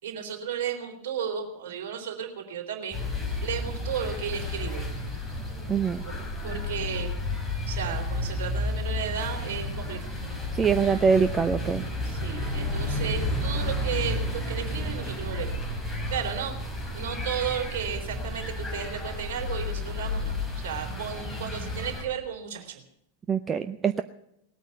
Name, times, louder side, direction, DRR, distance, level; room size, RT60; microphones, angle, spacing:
voice 1, 0.0-3.0 3.4-4.8 6.1-6.2 6.4-7.1 7.7-10.1 12.0-15.5 16.1-16.5 16.9-22.8, right 8 dB, 50° right, 2 dB, 3.5 m, -34 dB
sound 1, 2.9-22.0, left 2 dB, 10° left, 3.8 m, -32 dB
voice 2, 5.7-6.0 10.6-11.8 23.3-24.0, right 6 dB, 20° right, 10 dB, 0.6 m, -23 dB
19.0 x 9.2 x 8.1 m, 0.79 s
figure-of-eight pair, 90°, 0 cm